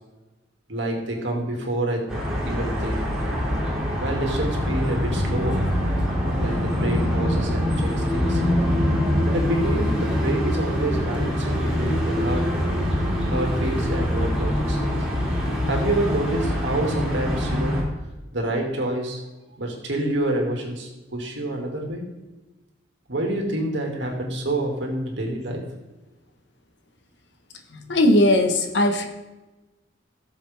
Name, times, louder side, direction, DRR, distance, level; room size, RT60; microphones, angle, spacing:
voice 1, 0.7-2.1 2.5-3.0 4.0-5.6 6.4-8.6 9.3-12.5 13.3-15.0 15.7-17.8 18.3-19.2 19.6-22.0 23.1-25.6, right 1 dB, 80° right, 1 dB, 2.5 m, -27 dB
sound 1, 2.1-17.8, equal, 5° right, 3.0 m, -24 dB
voice 2, 27.9-29.1, left 1 dB, 70° left, 4 dB, 1.4 m, -18 dB
17.0 x 7.0 x 3.6 m, 1.1 s
head